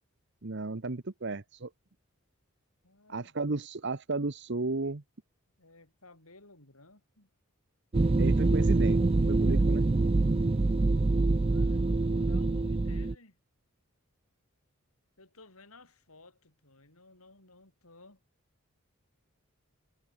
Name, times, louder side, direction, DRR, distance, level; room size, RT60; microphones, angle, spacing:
voice 1, 0.4-1.7 3.1-5.0 8.2-9.0 9.3-9.9, right 3 dB, 55° right, 1.0 m, -33 dB
voice 2, 2.8-3.3 5.6-7.3 11.5-13.4 15.2-18.2, left 2 dB, 90° left, 7.9 m, -56 dB
sound 1, 7.9-13.1, right 2 dB, 25° right, 0.4 m, -25 dB
head